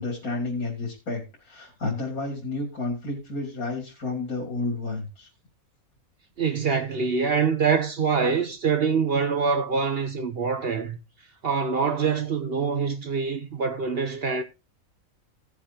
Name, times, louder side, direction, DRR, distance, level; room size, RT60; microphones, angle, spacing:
voice 1, 0.0-5.3, left 2 dB, 85° left, 3.3 m, -31 dB
voice 2, 6.4-11.0 11.4-14.4, right 5 dB, 50° right, 1.0 m, -25 dB
17.0 x 7.2 x 2.9 m
omnidirectional pair, 1.5 m